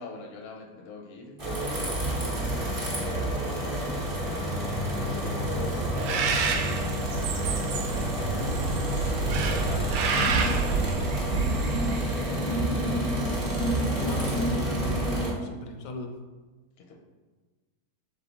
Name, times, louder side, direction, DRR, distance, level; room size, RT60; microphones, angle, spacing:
voice 1, 0.0-8.8 9.3-12.9 16.8-17.0, left 3 dB, 55° left, 1 dB, 0.7 m, -43 dB
sound 1, 1.4-15.3, right 1 dB, 25° right, 0.8 m, -29 dB
Bird, 6.0-12.4, right 5 dB, 90° right, 1.2 m, -29 dB
voice 2, 13.9-16.2, left 2 dB, 90° left, 5 dB, 1.2 m, -37 dB
3.8 x 3.3 x 4.0 m, 1.3 s
omnidirectional pair, 1.7 m